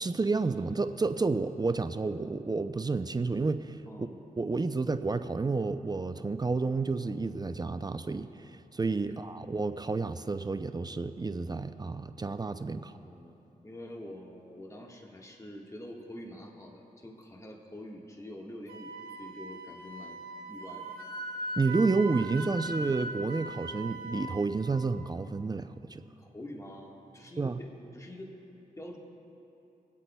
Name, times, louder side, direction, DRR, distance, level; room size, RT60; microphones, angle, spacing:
voice 1, 0.0-3.8 4.4-12.9 21.6-26.0 27.4-27.6, right 3 dB, 25° right, 10 dB, 0.5 m, -30 dB
voice 2, 3.9-4.2 9.0-9.2 12.7-13.4 13.6-20.9 26.2-28.3 28.8-29.0, left 1 dB, 20° left, 0 dB, 1.5 m, -46 dB
Wind instrument woodwind instrument, 18.7-24.5, right 2 dB, 85° right, 0.9 m, -40 dB
25.0 x 8.3 x 2.3 m, 2.9 s
cardioid pair, 55°, 16 cm